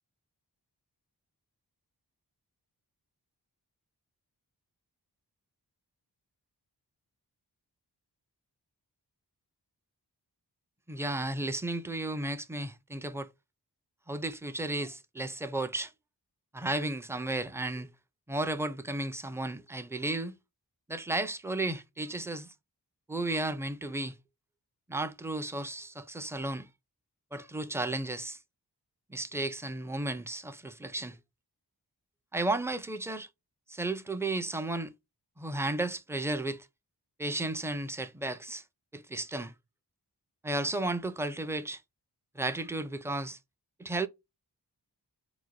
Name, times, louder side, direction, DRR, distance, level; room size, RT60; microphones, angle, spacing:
voice 1, 10.9-13.3 14.1-15.9 16.5-17.9 18.3-20.4 20.9-22.5 23.1-24.2 24.9-26.7 27.3-28.4 29.1-31.2 32.3-33.3 33.7-34.9 35.4-36.7 37.2-38.6 38.9-39.5 40.4-41.8 42.4-43.4 43.8-44.1, right 2 dB, 5° right, 0.4 m, -33 dB
3.9 x 2.2 x 4.6 m
wide cardioid pair, 65°, 41 cm